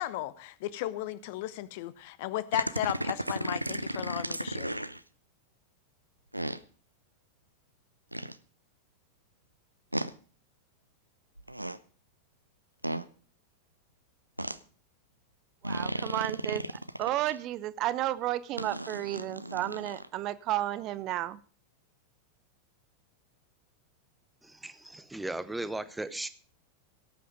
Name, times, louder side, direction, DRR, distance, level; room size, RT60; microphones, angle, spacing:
voice 1, 0.0-4.7, left 15 dB, 50° left, 17 dB, 0.9 m, -35 dB
sound 1, 2.5-5.0 6.3-6.6 8.1-8.3 9.9-10.1 11.4-11.8 12.8-13.0 14.4-14.6 15.6-17.4 18.6-20.1, right 1 dB, 85° right, 0.5 m, -34 dB
voice 2, 15.6-16.6 17.0-21.4, right 14 dB, 35° right, 17 dB, 0.6 m, -32 dB
voice 3, 24.4-26.3, right 2 dB, 5° right, 13 dB, 0.9 m, -37 dB
17.5 x 8.5 x 5.2 m, 0.41 s
figure-of-eight pair, 90°, 0 cm